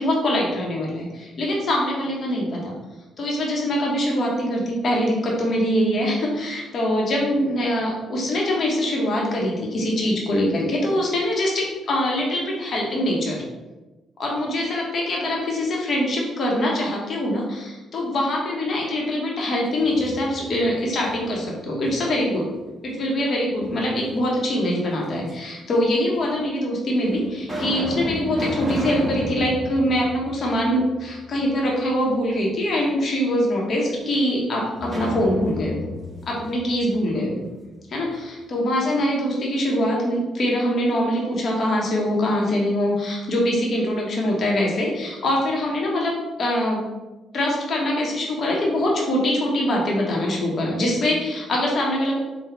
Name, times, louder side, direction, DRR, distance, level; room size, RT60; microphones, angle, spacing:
voice 1, 0.0-2.7 3.2-13.4 14.2-22.5 22.8-35.8 36.2-37.4 37.9-46.8 47.3-52.2, left 1 dB, 55° left, -2 dB, 1.0 m, -23 dB
sound 1, 19.7-20.6 21.1-22.3 23.6-24.4 25.3-25.4 26.3-26.4 26.9-31.0 31.4-31.5 34.8-37.6, equal, 15° right, 1.4 m, -32 dB
3.9 x 2.3 x 4.3 m, 1.1 s
cardioid pair, 90°, 0 cm